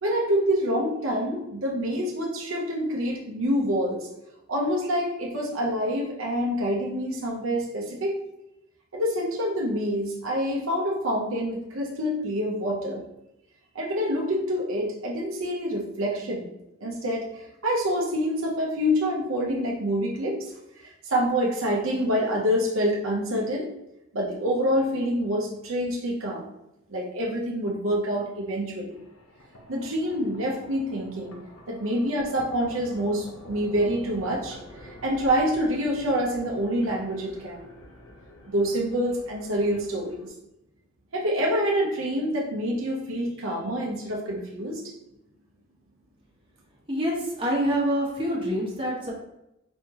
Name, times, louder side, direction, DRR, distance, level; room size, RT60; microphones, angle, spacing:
voice 1, 0.0-4.1 4.5-8.2 8.9-13.0 13.7-16.4 16.8-20.4 20.8-23.7 24.1-26.5 26.9-28.9 29.7-31.4 31.7-34.6 34.8-37.6 38.5-40.3 41.1-44.8, equal, 70° right, -2 dB, 0.7 m, -26 dB
sound 1, 28.9-40.3, equal, 80° left, 0.9 m, -47 dB
voice 2, 46.9-49.1, equal, 25° right, -4 dB, 1.2 m, -26 dB
4.3 x 3.6 x 2.9 m, 0.87 s
head